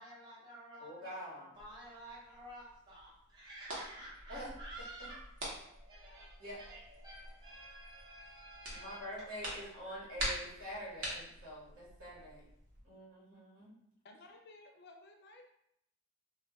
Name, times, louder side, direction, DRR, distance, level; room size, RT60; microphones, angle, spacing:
voice 1, 0.0-5.2 5.6-9.3 9.6-10.0, right 1 dB, 20° right, -7 dB, 0.6 m, -52 dB
voice 2, 0.8-1.5 4.3-4.5 4.8-5.1 6.4-6.6 8.7-12.4 12.8-13.7, equal, 70° right, -6 dB, 1.1 m, -46 dB
sound 1, 1.5-12.8, right 1 dB, 55° right, 0.8 m, -46 dB
voice 3, 14.0-15.4, left 2 dB, 50° left, 3 dB, 0.4 m, -56 dB
2.3 x 2.2 x 3.4 m, 0.77 s
head